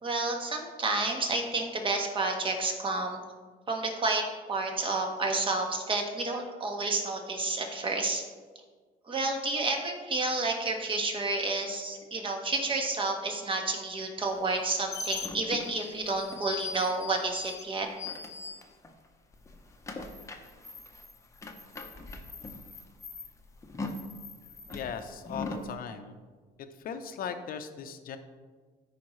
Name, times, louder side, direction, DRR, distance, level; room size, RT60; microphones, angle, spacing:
voice 1, 0.0-3.2 3.7-8.2 9.1-17.9, right 3 dB, 30° right, 2 dB, 1.4 m, -30 dB
sound 1, 14.4-19.1 19.3-25.7, left 4 dB, 15° left, 0.9 m, -41 dB
voice 2, 24.7-26.2 26.8-28.2, left 7 dB, 60° left, 8 dB, 0.8 m, -38 dB
13.0 x 5.1 x 3.2 m, 1.5 s
cardioid pair, 110°, 17 cm